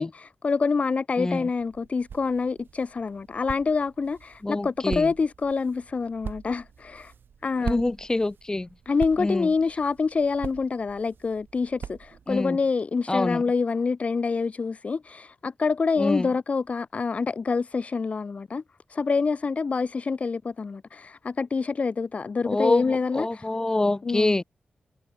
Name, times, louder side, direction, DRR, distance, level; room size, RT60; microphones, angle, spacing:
voice 1, 0.0-7.1 7.4-7.9 8.9-18.6 18.9-23.5 24.0-24.3, left 4 dB, 40° left, 0.5 m, -26 dB
voice 2, 1.2-1.5 4.4-5.1 7.6-8.7 9.2-9.5 12.3-12.6 13.1-13.4 16.0-16.3 22.5-24.4, left 2 dB, 20° left, 2.2 m, -26 dB
sound 1, 1.5-12.5, right 7 dB, 85° right, 4.1 m, -42 dB
wide cardioid pair, 130°, 3 cm